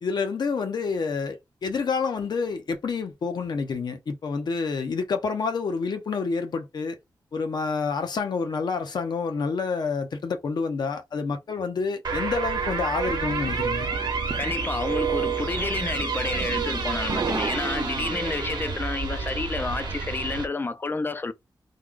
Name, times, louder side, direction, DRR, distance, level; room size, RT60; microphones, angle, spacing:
voice 1, 0.0-7.0 7.3-13.9, left 5 dB, 65° left, 0.9 m, -28 dB
sound 1, 12.0-20.5, right 5 dB, 65° right, 0.9 m, -29 dB
sound 2, 12.6-18.5, right 4 dB, 45° right, 0.6 m, -37 dB
voice 2, 14.4-21.3, left 3 dB, 25° left, 0.4 m, -30 dB
3.2 x 2.3 x 3.8 m
wide cardioid pair, 140°, 8 cm